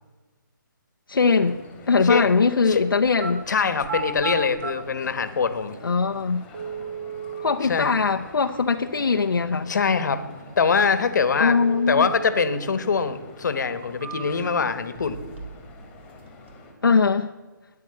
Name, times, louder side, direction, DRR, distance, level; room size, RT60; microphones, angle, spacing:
voice 1, 1.1-1.6 1.9-3.4 5.8-6.4 7.4-9.7 11.4-12.1 16.8-17.3, left 4 dB, 85° left, 3 dB, 0.9 m, -21 dB
sound 1, 1.2-16.7, left 2 dB, 10° left, 2.3 m, -47 dB
sound 2, 3.0-3.3 3.8-4.7 5.7-5.8 6.5-7.6 11.5-12.6 13.0-13.1 13.7-14.5 14.9-15.7 16.0-16.5, right 6 dB, 35° right, 2.5 m, -34 dB
voice 2, 3.5-5.8 7.7-7.9 9.7-10.2 10.6-11.6 11.9-15.2, left 5 dB, 60° left, 12 dB, 1.4 m, -23 dB
12.5 x 9.9 x 7.9 m, 1.2 s
hypercardioid pair, 160°, 11 cm